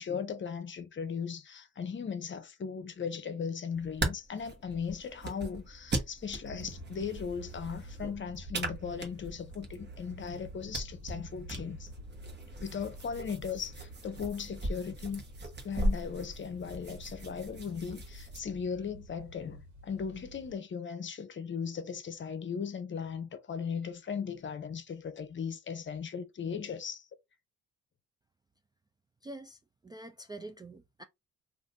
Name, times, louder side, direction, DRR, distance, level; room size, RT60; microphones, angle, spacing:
voice 1, 0.0-11.9 12.6-15.2 15.6-27.1, left 6 dB, 40° left, 0.8 m, -37 dB
sound 1, 3.7-18.4, right 1 dB, 35° right, 1.2 m, -39 dB
sound 2, 6.4-20.5, equal, 75° right, 1.4 m, -50 dB
voice 2, 29.2-31.0, right 2 dB, 15° right, 0.3 m, -46 dB
2.6 x 2.5 x 3.6 m
cardioid pair, 90°, 30 cm